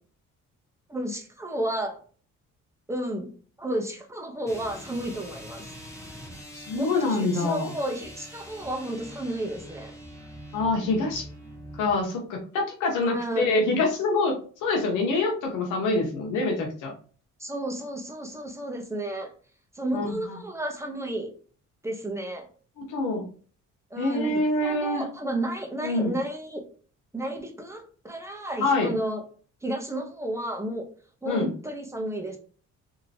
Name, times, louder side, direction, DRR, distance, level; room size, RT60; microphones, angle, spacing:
voice 1, 0.9-2.0 2.9-3.3 3.6-5.6 6.7-9.9 12.9-13.6 17.4-19.3 19.7-21.3 21.8-22.4 23.9-24.3 24.6-26.6 27.1-29.2 29.6-30.9 31.2-32.4, right 1 dB, 10° right, 3 dB, 0.8 m, -32 dB
sound 1, 4.4-12.0, equal, 10° left, 1.0 m, -44 dB
voice 2, 6.5-7.7 10.5-11.3 11.8-16.9 19.9-20.1 22.8-23.2 24.0-25.0 25.8-26.1 28.6-28.9 31.3-31.5, left 3 dB, 90° left, 1 dB, 0.8 m, -25 dB
2.9 x 2.8 x 2.7 m, 0.41 s
cardioid pair, 90°, 30 cm